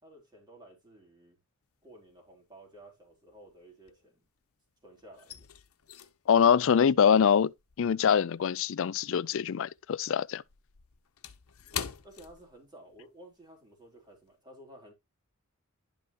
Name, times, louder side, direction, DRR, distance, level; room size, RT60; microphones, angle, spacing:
voice 1, 0.0-1.4 1.8-4.2 4.8-5.5 11.7-14.9, right 1 dB, 20° right, 3.7 m, -53 dB
sound 1, 1.7-2.3 2.5-4.5 4.8-9.5 9.8-13.1 13.4-13.6 14.1-14.3, left 9 dB, 85° left, 0.8 m, -45 dB
voice 2, 6.3-7.5 7.8-10.4, left 7 dB, 60° left, 0.4 m, -24 dB
11.0 x 5.6 x 2.9 m
head